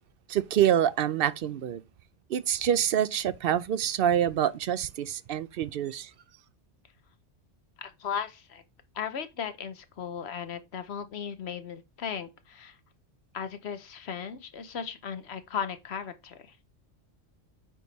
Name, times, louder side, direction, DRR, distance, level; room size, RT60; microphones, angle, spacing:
voice 1, 0.3-1.8 2.3-6.1, right 10 dB, 60° right, 0.6 m, -26 dB
voice 2, 7.8-8.6 8.9-12.8 13.3-16.6, left 7 dB, 60° left, 1.0 m, -36 dB
9.2 x 3.5 x 4.1 m
omnidirectional pair, 1.3 m